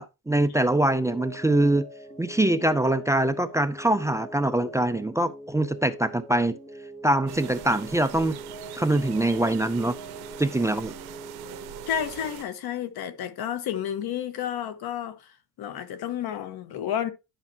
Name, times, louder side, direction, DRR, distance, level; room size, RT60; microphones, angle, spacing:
voice 1, 0.0-1.9 2.2-6.6 7.0-8.4 8.7-10.0 10.4-10.9, right 1 dB, 10° right, 0.4 m, -23 dB
sound 1, 0.6-12.3, right 1 dB, 20° left, 2.6 m, -43 dB
sound 2, 7.3-12.4, right 13 dB, 85° right, 0.8 m, -42 dB
voice 2, 11.9-17.1, left 9 dB, 85° left, 1.4 m, -31 dB
11.0 x 5.8 x 2.8 m
cardioid pair, 145°, 37 cm